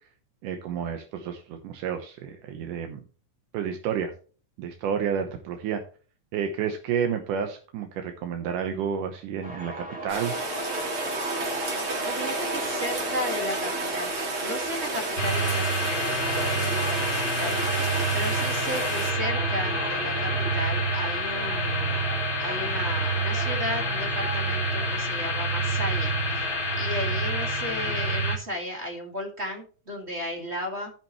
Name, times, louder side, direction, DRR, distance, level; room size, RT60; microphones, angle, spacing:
voice 1, 0.4-3.0 3.5-4.1 4.6-5.8 6.3-10.3, right 7 dB, 80° right, 5 dB, 2.5 m, -30 dB
sound 1, 9.4-28.2, right 1 dB, 5° right, 1.4 m, -36 dB
Rain, 10.1-19.1, right 3 dB, 40° right, 2.8 m, -32 dB
voice 2, 12.0-14.1 14.4-17.6 18.1-22.1 22.4-26.4 26.8-30.9, left 1 dB, 25° right, 2 dB, 1.7 m, -34 dB
sound 2, 15.2-28.4, right 1 dB, 20° left, 1.8 m, -27 dB
14.5 x 5.8 x 3.0 m, 0.38 s
omnidirectional pair, 3.7 m